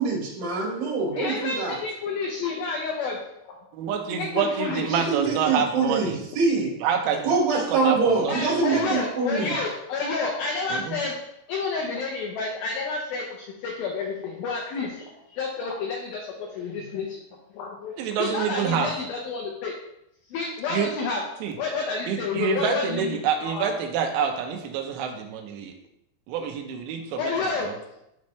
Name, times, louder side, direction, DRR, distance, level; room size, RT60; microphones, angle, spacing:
voice 1, 0.0-1.8 4.9-6.7 7.2-9.5 16.8-16.9, right 4 dB, 55° right, -8 dB, 4.0 m, -24 dB
voice 2, 1.1-3.2 3.4-3.5 4.1-5.1 8.3-11.2 11.5-17.2 17.5-17.9 18.2-19.7 20.3-21.2 21.6-23.7 27.2-27.7, left 4 dB, 75° left, -1 dB, 2.2 m, -30 dB
voice 3, 3.7-6.2 6.8-7.3 7.7-8.9 10.7-11.0 18.0-18.9 20.7-20.9 21.4-21.5 22.1-25.7 26.3-27.3 27.7-27.8, right 7 dB, 80° right, 3 dB, 3.1 m, -27 dB
11.0 x 4.2 x 3.2 m, 0.82 s
omnidirectional pair, 5.1 m